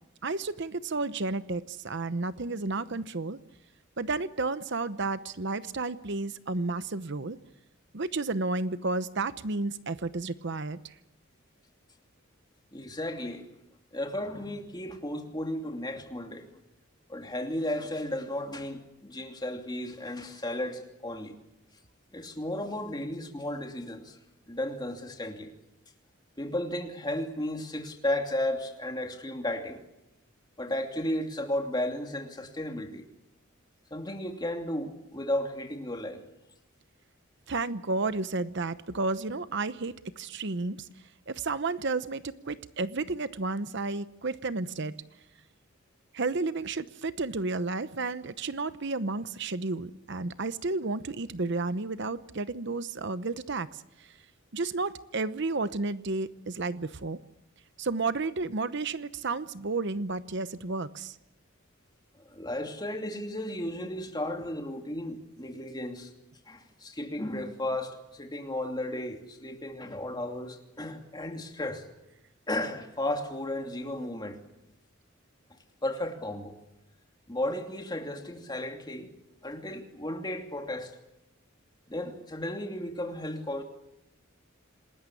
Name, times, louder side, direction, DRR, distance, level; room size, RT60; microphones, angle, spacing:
voice 1, 0.2-3.4 4.0-7.4 7.9-10.9 37.5-40.9 41.3-44.9 46.1-54.1 54.5-57.2 57.8-61.2, right 3 dB, 60° right, 0.9 m, -32 dB
voice 2, 12.7-13.4 13.9-16.5 17.1-21.4 22.1-24.2 24.5-25.5 26.4-29.8 30.6-33.0 33.9-36.2 62.3-66.1 66.5-71.9 72.5-74.4 75.8-76.6 77.3-79.1 79.4-80.9 81.9-83.6, left 1 dB, 20° left, 2.8 m, -34 dB
27.5 x 20.0 x 8.6 m
head